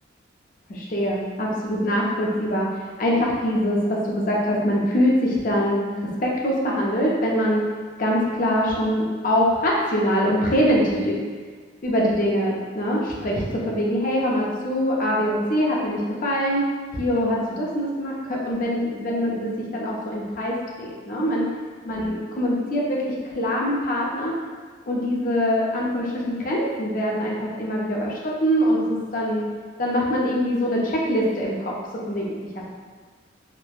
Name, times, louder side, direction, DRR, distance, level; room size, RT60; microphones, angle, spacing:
voice 1, 0.7-5.9 6.2-7.6 8.0-11.2 11.8-16.7 16.9-21.5 21.8-24.3 24.9-29.4 29.8-31.7 32.1-32.3, equal, 45° left, -3 dB, 0.5 m, -23 dB
3.1 x 2.1 x 2.3 m, 1.5 s
head